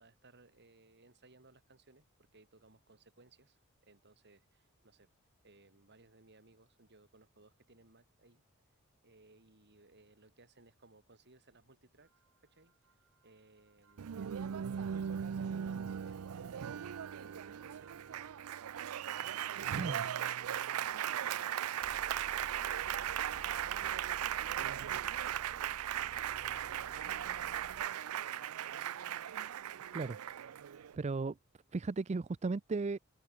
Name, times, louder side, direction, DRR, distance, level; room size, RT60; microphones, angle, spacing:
voice 1, 0.0-2.1 2.3-5.1 5.4-8.4 9.0-12.1 12.4-12.7 13.2-18.5 19.0-28.9, right 2 dB, 55° right, 3.5 m, -63 dB
sound 1, 12.1-12.2 12.9-13.0 13.3-13.4 13.8-28.3, right 2 dB, 70° right, 1.6 m, -57 dB
Applause, 14.0-31.0, right 10 dB, 90° right, 0.4 m, -38 dB
voice 2, 30.9-31.4 31.7-33.0, right 3 dB, 30° right, 0.4 m, -35 dB
head